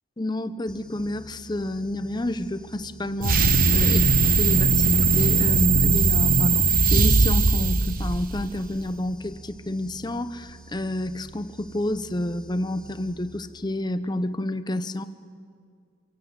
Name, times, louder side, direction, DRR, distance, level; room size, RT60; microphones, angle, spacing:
voice 1, 0.2-15.0, left 1 dB, 20° left, 12 dB, 0.7 m, -29 dB
sound 1, 0.7-13.8, right 2 dB, 5° left, 1.4 m, -47 dB
sound 2, 3.2-8.6, right 4 dB, 45° right, 1.0 m, -19 dB
26.5 x 17.0 x 8.0 m, 2.3 s
head